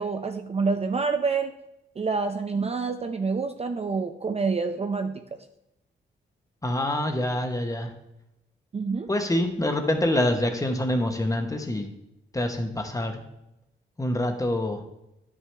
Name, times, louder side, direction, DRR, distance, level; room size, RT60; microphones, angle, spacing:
voice 1, 0.0-1.5 2.0-5.4 8.7-9.1, right 4 dB, 30° right, 7 dB, 0.5 m, -27 dB
voice 2, 6.6-7.9 9.1-11.9 12.3-13.2 14.0-14.8, left 1 dB, 15° left, 5 dB, 1.0 m, -26 dB
10.5 x 6.1 x 3.3 m, 0.88 s
cardioid pair, 105°, 21 cm